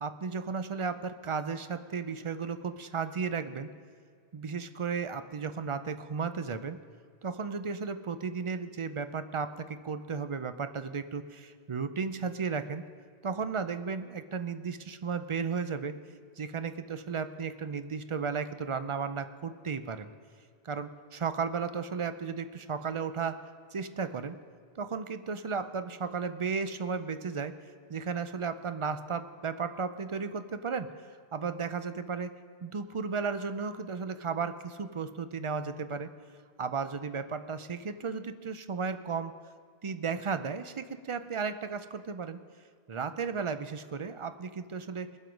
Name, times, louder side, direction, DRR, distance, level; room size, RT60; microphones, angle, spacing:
voice 1, 0.0-3.7 4.3-6.8 7.2-12.8 13.2-16.0 16.4-20.1 20.6-23.4 23.7-24.4 24.8-27.5 27.9-32.3 32.6-36.1 36.6-39.3 39.8-42.4 42.9-45.1, right 5 dB, 40° right, 10 dB, 0.5 m, -34 dB
20.5 x 7.6 x 5.2 m, 2.1 s
omnidirectional pair, 1.1 m